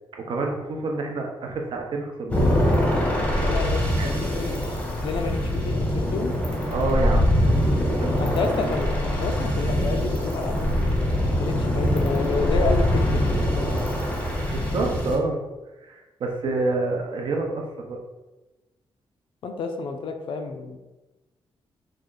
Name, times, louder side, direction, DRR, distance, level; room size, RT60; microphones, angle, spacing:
voice 1, 0.1-2.5 4.0-4.2 6.7-7.6 8.0-8.3 8.6-8.8 14.5-15.4 15.8-18.0, right 3 dB, 55° right, 1 dB, 0.6 m, -28 dB
sound 1, 2.3-15.2, left 1 dB, 10° left, 0.6 m, -23 dB
voice 2, 3.4-4.6 5.0-6.3 8.2-8.9 9.2-10.8 11.4-13.3 19.4-20.8, left 4 dB, 65° left, 5 dB, 0.4 m, -29 dB
3.2 x 2.4 x 3.8 m, 1.1 s
wide cardioid pair, 170°, 10 cm